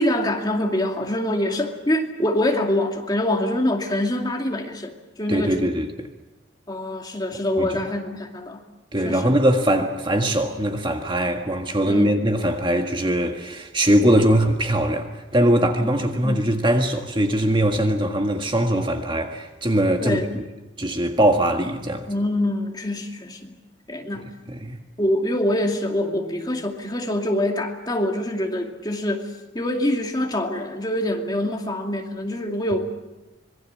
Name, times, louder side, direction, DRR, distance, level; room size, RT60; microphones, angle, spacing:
voice 1, 0.0-5.6 6.7-8.6 9.0-9.3 11.8-12.2 15.8-16.5 20.0-20.3 22.1-23.5 23.9-24.5 25.0-29.3 29.5-32.8, left 1 dB, 20° left, 2.5 m, -25 dB
voice 2, 5.3-5.9 7.6-7.7 8.9-20.4 20.8-22.1 24.5-24.8, right 1 dB, 25° right, 1.7 m, -21 dB
26.0 x 21.5 x 7.5 m
head